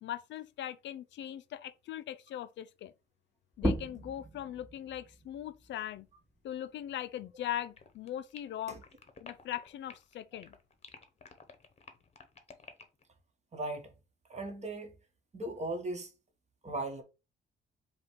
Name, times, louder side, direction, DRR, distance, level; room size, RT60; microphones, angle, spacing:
voice 1, 0.0-2.9 3.6-6.1 6.4-8.8 9.2-10.6, left 11 dB, 70° left, 0.4 m, -40 dB
sound 1, 3.5-8.7 9.1-10.9, equal, 10° right, 0.8 m, -39 dB
sound 2, 7.8-10.1 10.4-13.0, left 5 dB, 35° left, 0.9 m, -52 dB
voice 2, 13.5-13.9 14.3-14.9 15.3-16.1 16.6-17.0, right 2 dB, 35° right, 1.3 m, -37 dB
4.9 x 2.4 x 4.5 m
cardioid pair, 90°, 20 cm